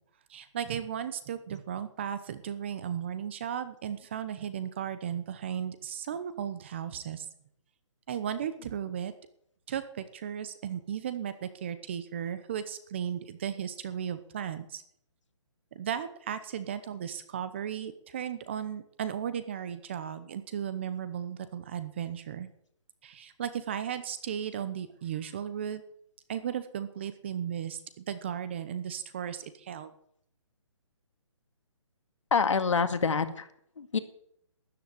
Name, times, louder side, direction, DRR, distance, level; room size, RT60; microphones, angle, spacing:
voice 1, 0.3-7.3 8.1-9.1 9.7-14.8 15.7-22.5 23.0-25.8 26.3-29.9, right 9 dB, 20° right, 13 dB, 0.8 m, -35 dB
voice 2, 32.3-33.5 33.8-34.0, left 5 dB, 70° left, 9 dB, 2.1 m, -26 dB
13.0 x 10.0 x 9.7 m, 0.69 s
hypercardioid pair, 170°, 17 cm